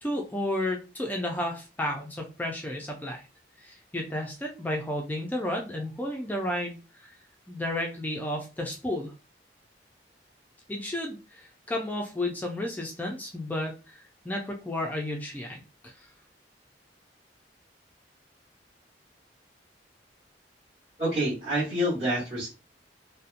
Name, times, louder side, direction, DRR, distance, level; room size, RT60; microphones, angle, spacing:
voice 1, 0.0-3.3 3.6-7.1 7.5-9.1 10.7-16.1, left 1 dB, 10° left, 1 dB, 0.3 m, -32 dB
voice 2, 21.0-22.5, equal, 40° right, -9 dB, 1.1 m, -27 dB
2.7 x 2.1 x 2.4 m, 0.30 s
head